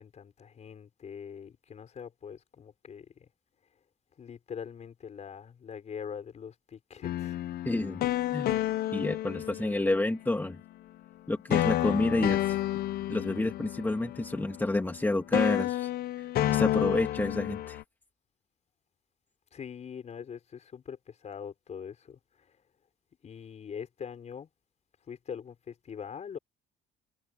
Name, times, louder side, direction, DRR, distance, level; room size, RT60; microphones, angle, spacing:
voice 1, 0.0-3.3 4.2-7.4 19.5-22.2 23.2-24.5 25.1-26.4, left 7 dB, 40° left, 5.1 m, -43 dB
sound 1, 7.0-10.2 11.5-15.0 15.3-17.8, left 14 dB, 65° left, 0.9 m, -30 dB
voice 2, 7.7-8.0 8.3-8.6 8.9-10.6 11.3-12.6 13.1-15.9 16.2-16.3 16.5-17.8, left 2 dB, 10° left, 2.0 m, -29 dB
cardioid pair, 110°, 17 cm